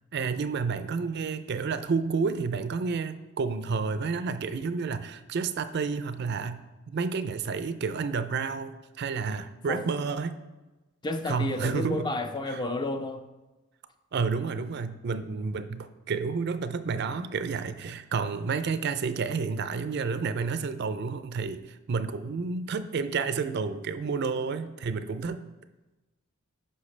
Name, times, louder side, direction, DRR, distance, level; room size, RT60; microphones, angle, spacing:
voice 1, 0.1-10.4 11.3-12.0 12.5-12.6 14.1-25.4, right 5 dB, 50° right, 12 dB, 0.4 m, -30 dB
voice 2, 11.0-13.2, left 2 dB, 20° left, 8 dB, 0.4 m, -31 dB
9.8 x 5.7 x 3.2 m, 1.1 s
head